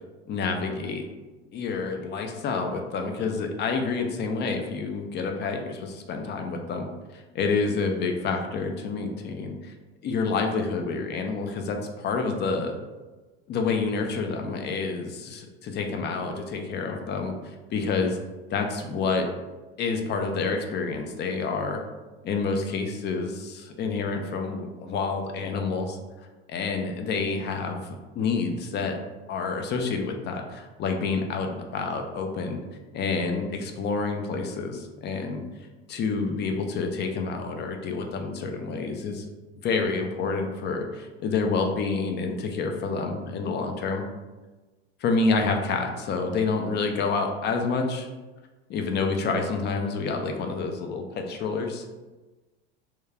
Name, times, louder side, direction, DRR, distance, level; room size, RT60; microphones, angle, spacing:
voice 1, 0.3-1.0 1.5-6.9 7.1-9.7 10.0-12.7 13.5-18.2 18.5-19.3 19.8-21.8 22.2-26.0 26.5-27.8 28.2-29.0 29.3-32.6 32.9-35.4 35.9-39.3 39.6-44.0 45.0-48.1 48.7-51.9, left 4 dB, 35° left, 4 dB, 0.4 m, -28 dB
3.0 x 2.3 x 2.3 m, 1.2 s
hypercardioid pair, 80°, 32 cm